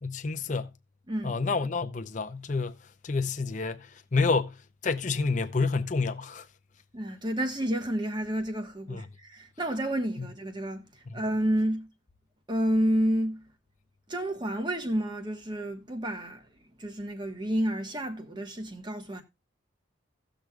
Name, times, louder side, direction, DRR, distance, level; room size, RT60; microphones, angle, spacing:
voice 1, 0.0-0.7 1.2-2.8 3.0-6.5 8.9-9.1 10.2-10.3 11.1-11.2, left 4 dB, 40° left, 0.5 m, -29 dB
voice 2, 6.9-10.9 11.1-11.9 12.5-13.4 14.1-16.4 16.8-19.2, right 1 dB, 20° right, 1.2 m, -30 dB
17.5 x 6.2 x 2.3 m
head